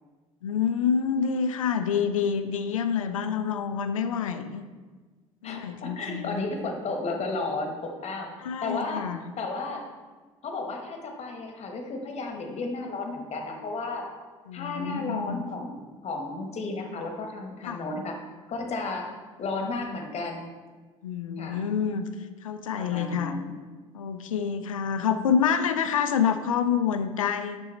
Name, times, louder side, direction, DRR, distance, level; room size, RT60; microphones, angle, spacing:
voice 1, 0.4-4.7 5.4-6.4 8.4-9.2 14.5-15.4 17.7-17.8 21.0-22.1 22.4-23.3 23.9-27.6, left 7 dB, 80° left, 9 dB, 0.5 m, -27 dB
voice 2, 5.4-8.3 8.6-9.1 9.4-9.8 10.4-14.1 14.5-18.2 18.5-19.1 19.4-20.4 21.4-21.7 22.8-23.5, left 3 dB, 40° left, 3 dB, 1.3 m, -33 dB
6.4 x 6.2 x 4.3 m, 1.4 s
figure-of-eight pair, 60°, 17 cm